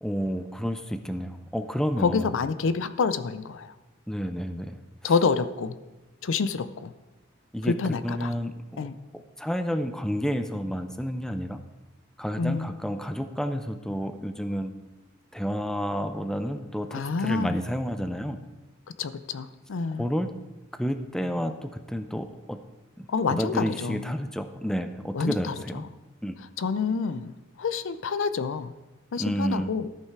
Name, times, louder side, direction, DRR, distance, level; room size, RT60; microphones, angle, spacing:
voice 1, 0.0-2.3 4.1-5.1 7.5-7.7 8.0-8.9 9.1-11.6 12.2-14.7 15.3-18.4 20.0-20.3 20.7-22.6 23.0-25.8 26.2-26.4 29.2-29.7, equal, 5° left, 8 dB, 0.4 m, -30 dB
voice 2, 2.0-3.7 5.0-5.8 6.2-6.9 7.6-8.3 8.8-8.9 12.4-12.7 16.9-17.6 19.0-20.1 23.1-24.1 25.1-25.5 26.6-27.3 27.6-28.7 29.1-29.9, left 5 dB, 65° left, 13 dB, 0.5 m, -27 dB
13.5 x 5.6 x 4.6 m, 1.1 s
head